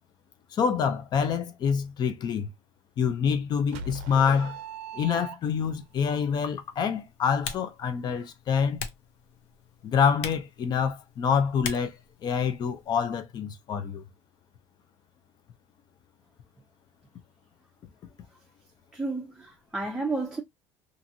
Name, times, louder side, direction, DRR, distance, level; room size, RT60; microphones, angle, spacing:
voice 1, 0.5-2.5 3.0-4.6 4.9-8.8 9.8-11.9 12.2-14.0, left 6 dB, 40° left, 0.6 m, -26 dB
sound 1, 3.7-5.8, right 4 dB, 80° right, 0.5 m, -40 dB
Typing, 5.6-13.1, left 7 dB, 85° left, 0.6 m, -43 dB
voice 2, 18.9-20.4, right 3 dB, 5° right, 0.6 m, -31 dB
2.8 x 2.6 x 2.6 m
cardioid pair, 125°, 10 cm